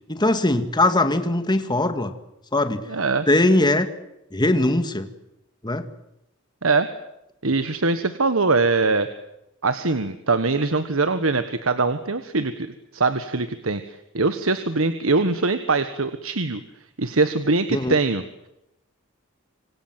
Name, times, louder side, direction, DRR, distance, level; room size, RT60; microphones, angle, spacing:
voice 1, 0.1-2.1 2.5-2.9 3.3-3.9 4.3-5.1 5.6-5.9 17.7-18.0, left 2 dB, 20° left, 9 dB, 2.0 m, -20 dB
voice 2, 2.9-3.3 6.6-6.9 7.4-9.1 9.6-13.8 14.1-16.6 17.0-18.2, right 3 dB, 80° right, 10 dB, 1.4 m, -22 dB
26.5 x 26.0 x 7.6 m, 0.84 s
head